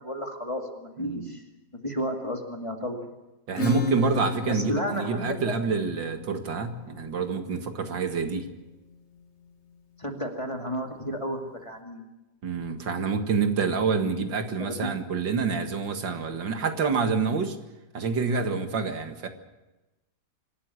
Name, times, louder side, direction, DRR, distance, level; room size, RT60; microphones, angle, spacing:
voice 1, 0.0-1.4 1.8-3.1 4.5-5.5 10.0-12.0 14.6-14.9, equal, 15° left, 3 dB, 2.3 m, -32 dB
voice 2, 1.0-1.3 3.5-8.5 12.4-17.6 17.9-19.3, right 5 dB, 85° right, 6 dB, 2.5 m, -27 dB
Acoustic guitar / Strum, 3.6-8.9, left 2 dB, 40° left, 1.6 m, -35 dB
25.5 x 13.0 x 9.6 m, 1.0 s
omnidirectional pair, 1.9 m